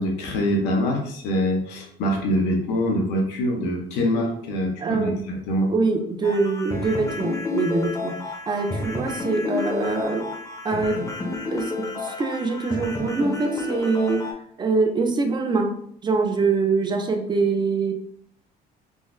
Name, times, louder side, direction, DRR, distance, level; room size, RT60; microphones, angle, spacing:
voice 1, 0.0-5.7, equal, 90° left, 0 dB, 0.8 m, -24 dB
voice 2, 4.8-5.2 5.7-8.2 8.5-10.3 10.6-11.0 11.5-14.3 14.6-17.9, right 3 dB, 25° right, 5 dB, 0.4 m, -24 dB
sound 1, 6.2-14.3, left 3 dB, 20° left, 0.6 m, -30 dB
3.7 x 2.1 x 2.5 m, 0.65 s
cardioid pair, 110°, 17 cm